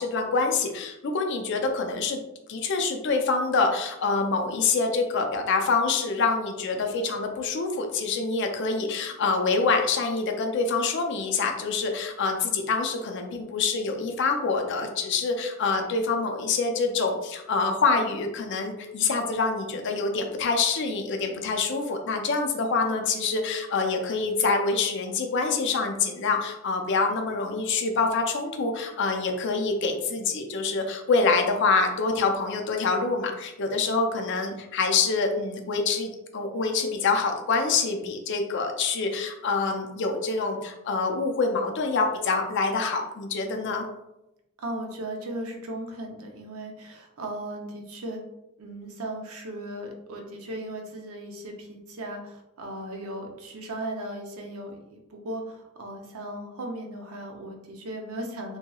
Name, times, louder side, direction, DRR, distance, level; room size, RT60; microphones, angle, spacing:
voice 1, 0.0-2.2 2.5-43.8, left 4 dB, 55° left, 4 dB, 0.4 m, -26 dB
voice 2, 44.6-48.2 48.6-58.6, right 1 dB, 75° right, 2 dB, 0.6 m, -37 dB
2.9 x 2.7 x 2.3 m, 0.92 s
head